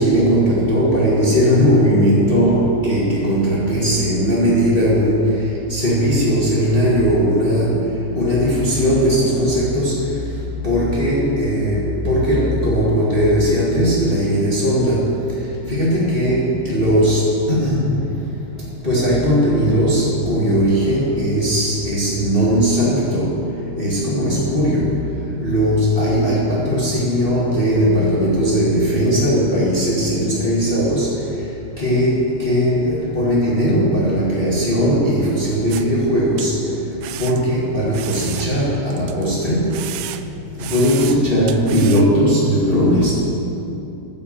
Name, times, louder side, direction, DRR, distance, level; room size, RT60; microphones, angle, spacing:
voice 1, 0.0-5.3 5.7-7.7 8.1-9.9 10.6-15.0 15.7-17.9 18.8-23.3 23.8-24.9 25.4-31.1 31.8-36.5 37.2-39.7 40.7-43.1, equal, 20° left, -7 dB, 1.8 m, -18 dB
sound 1, 35.7-35.9 36.4-36.5 37.0-37.4 37.9-39.3 39.7-40.3 40.6-41.2 41.5-42.1, right 13 dB, 85° right, 1.9 m, -32 dB
14.0 x 6.4 x 7.9 m, 2.8 s
omnidirectional pair, 3.3 m